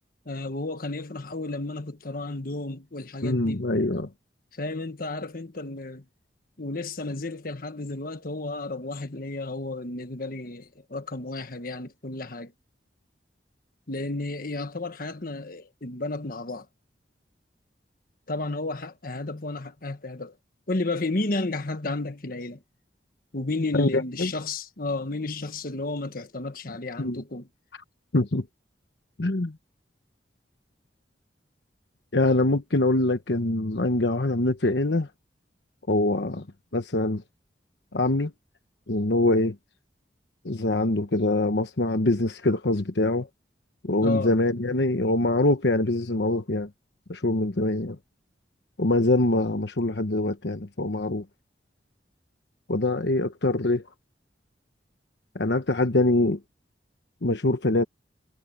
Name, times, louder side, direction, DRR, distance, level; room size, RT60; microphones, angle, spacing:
voice 1, 0.2-3.6 4.5-6.0 6.6-12.5 13.9-16.7 18.3-20.4 20.7-22.6 23.3-27.5 44.0-44.3, left 2 dB, 55° left, 1.4 m, -32 dB
voice 2, 3.2-4.1 23.7-24.3 27.0-27.2 28.1-28.4 29.2-29.5 32.1-35.1 35.9-36.4 36.7-37.2 37.9-38.3 38.9-39.5 40.4-43.3 43.8-46.7 47.1-48.0 48.8-51.2 52.7-53.8 55.3-56.4 57.2-57.8, left 2 dB, 75° left, 1.1 m, -24 dB
head